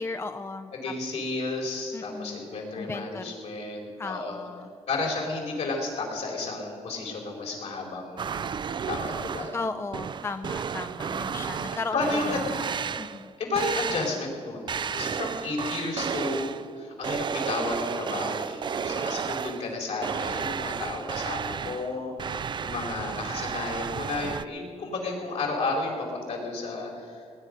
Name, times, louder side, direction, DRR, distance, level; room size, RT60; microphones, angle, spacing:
voice 1, 0.0-0.9 1.9-2.4 2.8-3.4 4.0-4.7 9.5-12.7 13.0-13.3, left 3 dB, 20° left, 9 dB, 0.6 m, -35 dB
voice 2, 0.7-4.3 4.9-8.4 8.9-9.5 11.9-12.4 13.4-27.2, left 3 dB, 75° left, -2 dB, 4.7 m, -32 dB
sound 1, 8.2-9.6 9.9-13.3 13.6-14.3 14.7-16.7 17.0-19.8 20.0-24.5, right 7 dB, 40° right, 0.4 m, -32 dB
19.0 x 9.9 x 6.6 m, 2.3 s
cardioid pair, 105°, 12 cm